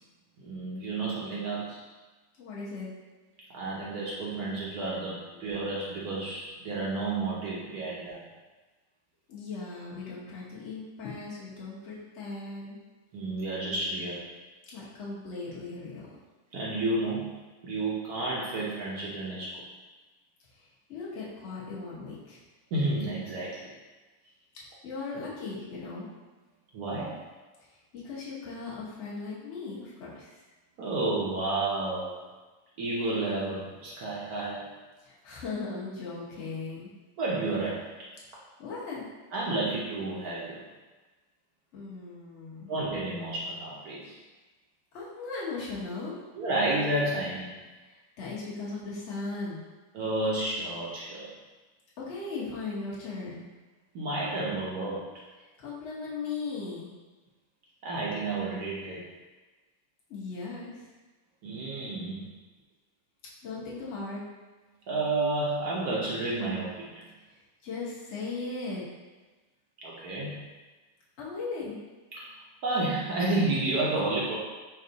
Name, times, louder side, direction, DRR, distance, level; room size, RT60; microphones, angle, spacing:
voice 1, 0.4-1.8 3.5-8.2 13.1-14.2 16.5-19.6 22.7-23.6 26.7-27.2 30.8-32.1 32.8-34.7 37.2-38.1 39.3-40.6 42.7-44.1 46.3-47.6 49.9-51.3 53.9-55.0 57.8-59.0 61.4-62.3 64.9-67.1 69.8-70.4 72.1-72.3 72.6-74.4, right 2 dB, 65° right, -5 dB, 1.1 m, -31 dB
voice 2, 2.4-2.9 9.3-12.8 14.7-16.1 20.9-22.4 24.5-26.1 28.0-30.4 35.0-36.9 38.6-39.0 41.7-42.7 44.9-46.1 47.9-49.6 52.0-53.4 55.6-56.9 60.1-60.8 63.4-64.2 67.6-68.8 71.2-71.8, left 3 dB, 45° left, -7 dB, 1.1 m, -38 dB
4.5 x 2.3 x 3.8 m, 1.2 s
omnidirectional pair, 2.0 m